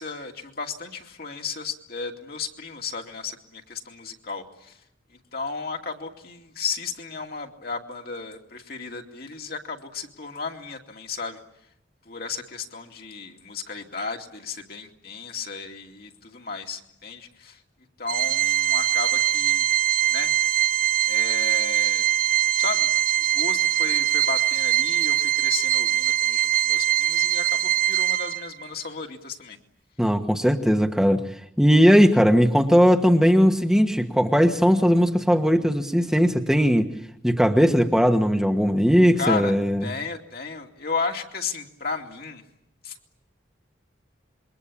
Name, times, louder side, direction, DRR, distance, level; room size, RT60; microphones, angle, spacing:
voice 1, 0.0-4.8 5.3-11.4 12.1-17.6 18.0-19.6 20.1-20.3 21.1-22.1 22.6-22.9 23.2-29.6 39.2-39.5 39.8-42.4 42.8-42.9, left 4 dB, 50° left, 3 dB, 2.6 m, -34 dB
Organ, 18.1-28.7, right 12 dB, 50° right, 1.1 m, -22 dB
voice 2, 30.0-31.2 31.6-36.9 37.2-39.8, equal, 5° right, 4 dB, 1.3 m, -18 dB
27.5 x 23.0 x 8.6 m, 0.75 s
head